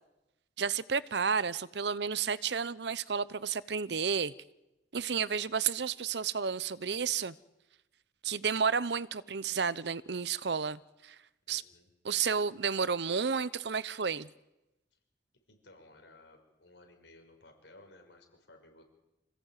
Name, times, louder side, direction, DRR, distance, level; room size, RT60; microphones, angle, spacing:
voice 1, 0.6-4.3 4.9-7.3 8.2-11.2 11.5-11.6 12.0-14.3, right 6 dB, 70° right, 0.7 m, -31 dB
voice 2, 11.5-11.9 15.5-18.8, left 2 dB, 85° left, 5.9 m, -57 dB
26.5 x 16.5 x 9.1 m
head